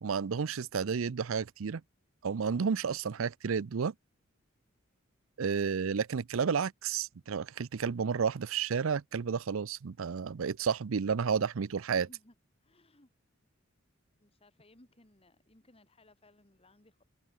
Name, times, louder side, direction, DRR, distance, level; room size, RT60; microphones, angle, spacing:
voice 1, 0.0-1.8 2.2-3.9 5.4-12.1, right 6 dB, 75° right, 0.5 m, -31 dB
voice 2, 11.7-12.3 12.6-13.1 14.2-17.1, left 1 dB, 30° left, 2.4 m, -62 dB
open air
head